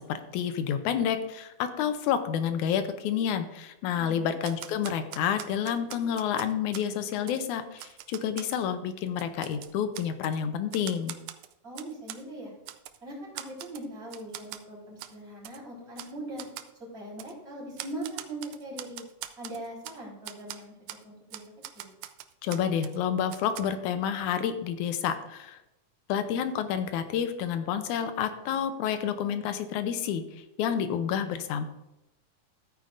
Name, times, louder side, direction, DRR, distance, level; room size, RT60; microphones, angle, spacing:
voice 1, 0.0-11.2 22.4-25.6 26.1-31.6, left 8 dB, 85° left, 9 dB, 2.2 m, -29 dB
voice 2, 4.0-4.3 11.6-12.5 13.0-16.5 16.8-19.0 19.4-20.7 21.0-21.4 21.7-21.9, right 1 dB, 20° right, -5 dB, 4.0 m, -40 dB
Typewriter, 4.4-6.9 7.3-7.4 7.8-8.6 9.1-10.4 10.7-12.2 12.7-13.0 13.4-13.9 14.1-14.6 15.0-15.1 15.4-15.6 16.0-16.1 16.4-16.7 17.2-17.3 17.8-20.0 20.2-20.6 20.9-21.0 21.3-23.0 23.3-23.6, right 13 dB, 85° right, 1.4 m, -42 dB
14.0 x 9.1 x 2.6 m, 0.89 s
omnidirectional pair, 3.4 m